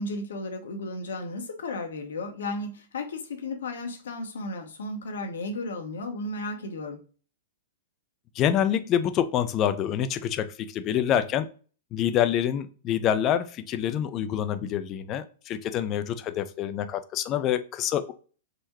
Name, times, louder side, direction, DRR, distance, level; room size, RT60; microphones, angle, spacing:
voice 1, 0.0-7.0, left 2 dB, 70° left, 0.7 m, -34 dB
voice 2, 8.4-11.5 11.9-18.1, left 10 dB, 35° left, 0.4 m, -26 dB
3.7 x 2.1 x 2.8 m
figure-of-eight pair, 105°, 0 cm